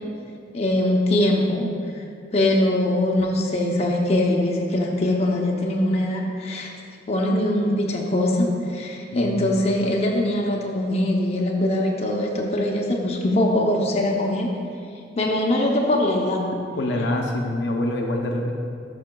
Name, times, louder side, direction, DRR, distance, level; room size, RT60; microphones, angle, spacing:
voice 1, 0.5-1.7 2.3-6.7 7.1-14.5 15.1-16.4, left 1 dB, 35° left, -1 dB, 0.6 m, -22 dB
voice 2, 9.1-9.4 16.8-18.5, left 1 dB, 70° left, 1 dB, 0.6 m, -25 dB
11.0 x 5.6 x 2.2 m, 2.4 s
head